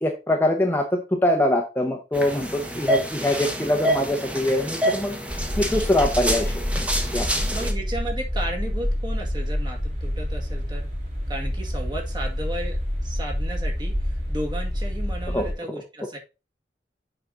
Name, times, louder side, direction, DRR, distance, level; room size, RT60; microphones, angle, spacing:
voice 1, 0.0-5.2 5.6-6.6 7.1-7.3 15.3-15.4, left 1 dB, 10° left, 2 dB, 0.9 m, -23 dB
sound 1, 2.1-7.7, right 1 dB, 10° right, 1.1 m, -27 dB
sound 2, 5.3-15.5, equal, 40° right, 4.4 m, -28 dB
voice 2, 7.5-10.9 11.3-16.2, right 1 dB, 25° right, 0 dB, 1.9 m, -34 dB
7.5 x 5.2 x 3.9 m, 0.28 s
head